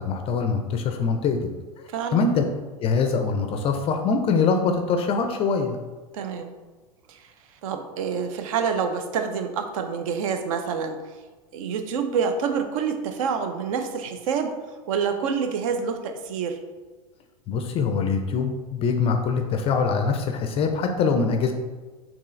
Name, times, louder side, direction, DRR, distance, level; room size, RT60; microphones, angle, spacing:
voice 1, 0.0-1.5 2.1-2.4 2.8-5.8 17.5-21.5, left 5 dB, 30° left, 5 dB, 0.4 m, -23 dB
voice 2, 1.9-2.3 6.1-6.5 7.1-7.2 7.6-11.0 11.5-14.6 14.9-16.6, right 6 dB, 60° right, 7 dB, 0.5 m, -27 dB
4.4 x 2.9 x 3.1 m, 1.3 s
hypercardioid pair, 90°, 19 cm